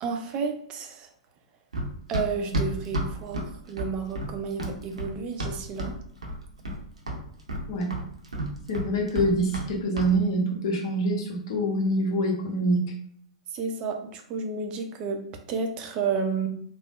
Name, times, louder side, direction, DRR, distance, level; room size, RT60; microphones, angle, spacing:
voice 1, 0.0-1.1 2.1-5.9 13.5-15.2 15.5-16.5, right 5 dB, 30° right, 4 dB, 0.5 m, -31 dB
Run, 1.7-6.0 6.2-6.8 7.1-9.7 10.0-10.1, right 1 dB, 75° right, 0.6 m, -31 dB
voice 2, 8.7-12.8, right 1 dB, 55° left, 1 dB, 0.8 m, -25 dB
3.3 x 2.0 x 2.4 m, 0.65 s
figure-of-eight pair, 105°, 3 cm